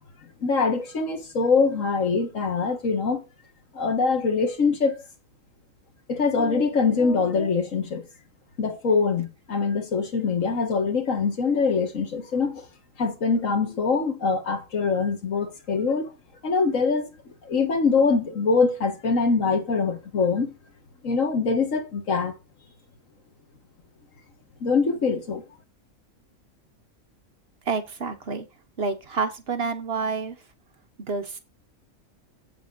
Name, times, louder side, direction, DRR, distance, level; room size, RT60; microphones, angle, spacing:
voice 1, 0.4-3.2 3.7-5.0 6.1-8.0 8.6-12.7 13.0-16.1 16.4-17.1 17.4-20.5 21.0-22.3 24.6-25.4, left 4 dB, 70° left, 1.9 m, -23 dB
voice 2, 27.7-28.5 28.8-30.4 31.1-31.4, right 4 dB, 50° right, 1.1 m, -28 dB
7.7 x 6.9 x 3.9 m
omnidirectional pair, 1.4 m